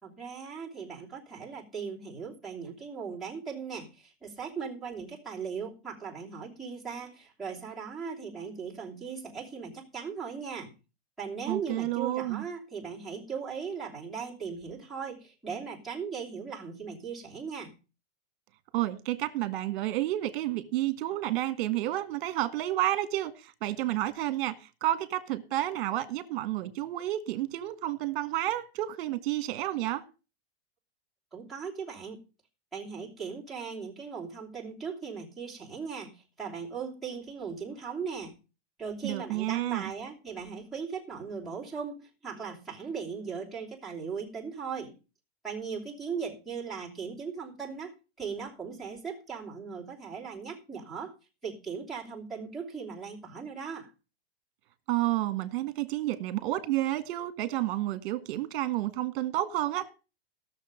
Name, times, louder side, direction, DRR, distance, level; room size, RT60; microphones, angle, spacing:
voice 1, 0.0-10.7 11.2-17.7 31.3-32.2 32.7-38.4 38.8-45.0 45.4-51.1 51.4-53.9, right 6 dB, ahead, 3.0 m, -38 dB
voice 2, 11.5-12.4 18.7-24.5 24.8-30.0 39.0-39.9 54.9-59.9, right 14 dB, 50° right, 1.7 m, -30 dB
17.0 x 6.7 x 5.1 m
supercardioid pair, 165°, 31 cm